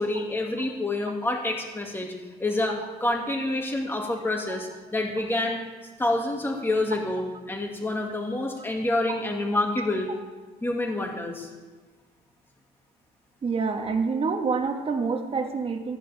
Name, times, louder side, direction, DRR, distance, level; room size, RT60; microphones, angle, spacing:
voice 1, 0.0-2.1 2.4-2.8 3.0-5.6 6.0-10.1 10.6-11.5, left 2 dB, 15° left, 1 dB, 2.3 m, -27 dB
voice 2, 13.4-16.0, right 4 dB, 35° right, 4 dB, 1.7 m, -27 dB
14.5 x 13.5 x 3.6 m, 1.3 s
cardioid pair, 110°, 17 cm